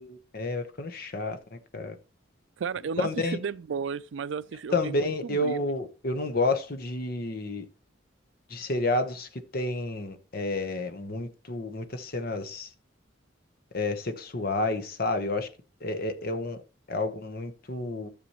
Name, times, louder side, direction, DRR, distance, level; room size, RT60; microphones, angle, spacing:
voice 1, 0.0-2.0 3.0-3.4 4.7-7.6 8.5-12.7 13.7-15.5 15.8-16.6 16.9-18.1, left 2 dB, 50° left, 1.0 m, -30 dB
voice 2, 2.6-5.7, right 6 dB, 80° right, 0.4 m, -34 dB
13.0 x 6.9 x 3.0 m
head